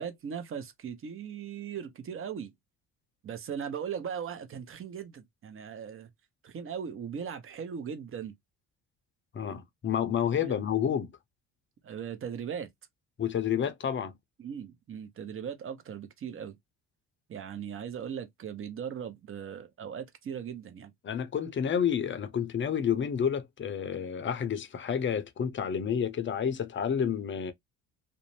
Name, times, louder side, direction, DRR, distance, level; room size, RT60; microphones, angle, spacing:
voice 1, 0.0-2.5 3.2-6.1 6.4-8.3 10.5-10.6 11.8-12.7 14.4-16.5 17.3-20.9, right 7 dB, 35° right, 0.8 m, -38 dB
voice 2, 9.3-11.1 13.2-14.2 21.0-27.5, left 8 dB, 35° left, 0.6 m, -30 dB
2.5 x 2.1 x 3.0 m
supercardioid pair, 75°, 36 cm